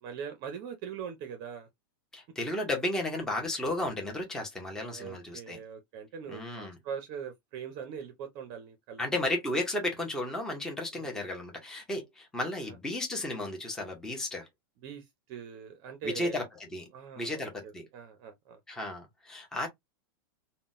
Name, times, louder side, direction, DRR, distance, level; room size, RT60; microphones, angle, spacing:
voice 1, 0.0-1.7 4.7-9.2 10.9-11.1 12.6-12.8 14.8-16.4 16.9-18.6, right 7 dB, 35° right, 0.5 m, -42 dB
voice 2, 2.1-5.6 6.3-6.8 9.0-14.5 16.0-16.4 16.7-16.9 17.2-17.9 18.7-19.7, left 1 dB, 5° left, 0.6 m, -33 dB
3.6 x 2.1 x 2.4 m
supercardioid pair, 160°, 12 cm